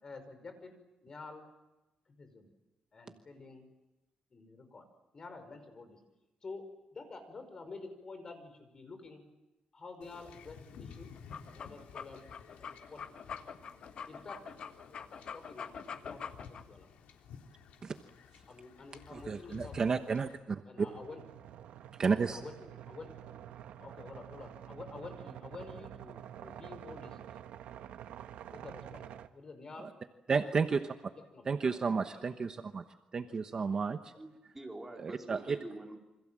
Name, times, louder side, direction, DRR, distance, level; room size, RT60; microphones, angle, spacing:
voice 1, 0.0-0.7 1.0-1.5 2.1-2.5 2.9-3.7 4.3-4.8 5.1-6.0 6.4-6.7 6.9-9.2 9.7-11.1 11.5-12.3 12.6-13.0 14.1-14.4 15.1-16.9 18.5-20.0 20.7-21.2 22.2-23.1 23.4-23.5 23.8-27.2 28.5-29.0 29.3-29.9 30.3-30.7 31.3-31.9 32.1-32.2 33.2-33.3, left 3 dB, 30° left, 8 dB, 5.4 m, -49 dB
Wind / Ocean / Boat Water vehicle, 10.0-20.4, left 6 dB, 90° left, 3.7 m, -54 dB
sound 1, 11.2-16.6, left 6 dB, 45° left, 1.5 m, -44 dB
voice 2, 19.1-20.9 22.0-22.4 29.8-29.9 30.3-30.9 31.5-32.8 33.1-34.0 35.0-35.6, right 5 dB, 30° right, 7 dB, 1.1 m, -32 dB
sound 2, 20.7-29.3, right 10 dB, 85° right, 1.4 m, -48 dB
voice 3, 34.2-36.0, right 2 dB, 10° right, 0 dB, 4.6 m, -46 dB
28.5 x 25.5 x 7.6 m, 1.0 s
cardioid pair, 155°, 2 cm